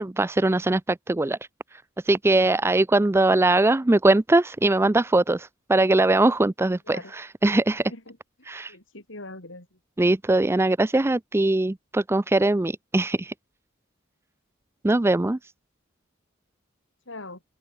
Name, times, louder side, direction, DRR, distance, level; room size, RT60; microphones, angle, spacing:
voice 1, 0.0-1.4 1.7-7.8 8.5-8.7 10.0-13.3 14.8-15.4, right 2 dB, 10° right, 0.4 m, -21 dB
voice 2, 7.8-8.2 8.7-9.8 17.1-17.4, left 2 dB, 65° left, 7.0 m, -41 dB
open air
head